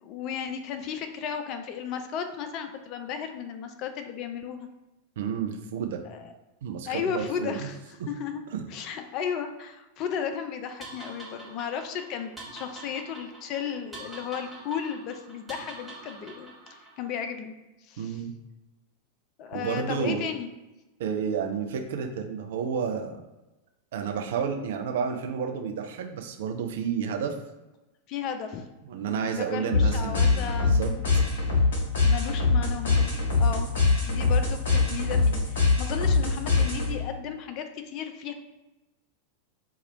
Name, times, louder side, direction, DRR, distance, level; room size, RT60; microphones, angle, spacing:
voice 1, 0.0-4.7 6.0-6.3 6.9-7.8 8.1-8.4 8.7-16.5 17.0-17.5 17.8-18.2 19.4-20.5 28.1-28.7 29.1-31.0 32.0-33.7 34.0-38.3, left 7 dB, 40° left, 7 dB, 0.4 m, -34 dB
voice 2, 5.2-6.0 6.6-7.7 8.5-8.6 18.0-18.3 19.5-20.3 21.0-23.2 23.9-27.3 28.8-31.2, right 7 dB, 55° right, 4 dB, 0.5 m, -31 dB
sound 1, 10.8-17.0, right 2 dB, 5° right, 1.0 m, -45 dB
sound 2, 29.7-37.1, left 3 dB, 60° left, 1.0 m, -23 dB
4.4 x 2.3 x 3.2 m, 1.1 s
figure-of-eight pair, 90°, 0 cm